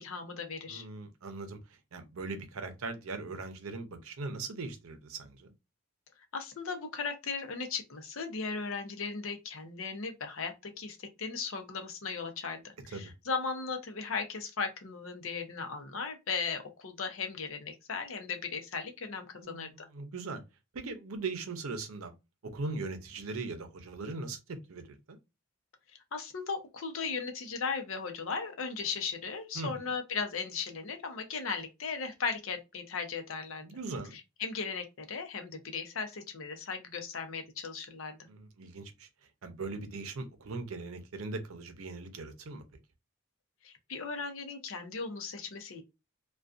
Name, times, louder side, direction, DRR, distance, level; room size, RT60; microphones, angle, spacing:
voice 1, 0.0-0.9 6.3-19.7 26.1-33.6 34.1-38.2 43.6-45.8, left 5 dB, 75° left, 0.6 m, -37 dB
voice 2, 0.7-5.5 12.9-13.1 19.4-20.4 20.7-22.1 22.4-25.2 29.5-29.9 33.6-34.1 38.3-39.1 39.4-42.6, right 3 dB, 85° right, 0.6 m, -40 dB
2.5 x 2.3 x 2.3 m
head